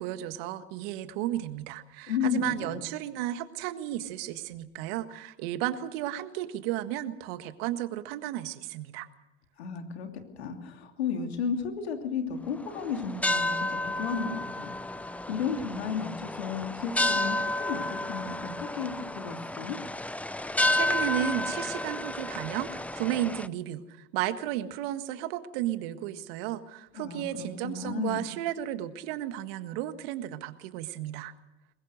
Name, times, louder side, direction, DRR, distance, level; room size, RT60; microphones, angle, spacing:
voice 1, 0.0-9.1 20.3-31.3, right 12 dB, 65° right, 10 dB, 1.7 m, -33 dB
voice 2, 2.1-2.8 9.6-10.1 10.4-19.8 26.9-28.3, left 6 dB, 85° left, 4 dB, 3.0 m, -33 dB
sound 1, 12.6-23.5, left 1 dB, 5° left, 0.7 m, -31 dB
23.0 x 20.5 x 6.5 m, 0.93 s
hypercardioid pair, 85°, 32 cm